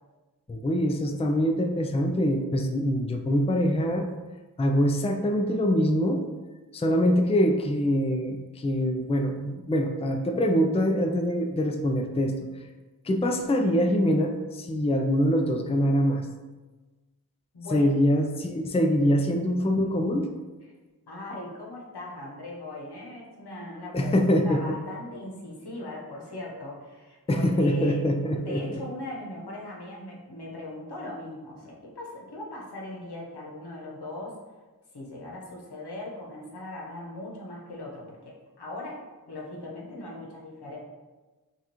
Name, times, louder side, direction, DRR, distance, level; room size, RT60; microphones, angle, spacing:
voice 1, 0.5-4.1 4.6-6.2 6.7-12.4 13.0-16.3 17.7-20.3 23.9-24.6 27.3-28.8, equal, 15° left, 4 dB, 0.4 m, -24 dB
voice 2, 17.5-17.9 19.3-19.4 21.1-28.0 28.2-34.4 34.9-40.8, left 1 dB, 85° left, -3 dB, 1.0 m, -39 dB
5.5 x 2.4 x 2.9 m, 1.2 s
wide cardioid pair, 45°, 39 cm